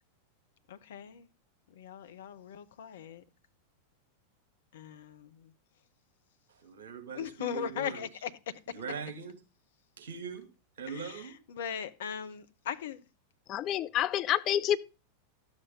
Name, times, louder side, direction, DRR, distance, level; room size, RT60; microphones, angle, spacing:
voice 1, 0.7-1.3 1.7-3.2 4.7-5.5 7.1-8.3 10.9-13.0, left 9 dB, 60° left, 0.9 m, -39 dB
voice 2, 6.5-8.0 8.7-9.3 10.0-10.5 10.8-11.4, right 6 dB, 60° right, 2.5 m, -41 dB
voice 3, 13.5-14.8, left 11 dB, 35° left, 0.5 m, -28 dB
12.0 x 7.5 x 3.7 m
figure-of-eight pair, 90°, 0 cm